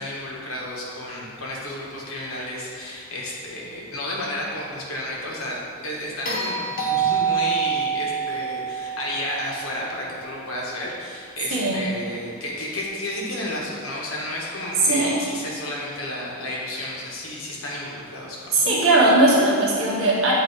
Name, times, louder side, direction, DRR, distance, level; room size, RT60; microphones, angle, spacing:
voice 1, 0.0-18.6, left 1 dB, 75° left, -3 dB, 1.2 m, -32 dB
sound 1, 6.2-10.5 12.8-12.9, right 7 dB, 40° left, 1.0 m, -27 dB
voice 2, 11.5-11.8 14.8-15.2 18.5-20.3, right 2 dB, 70° right, -5 dB, 1.4 m, -19 dB
8.1 x 2.8 x 4.5 m, 2.2 s
head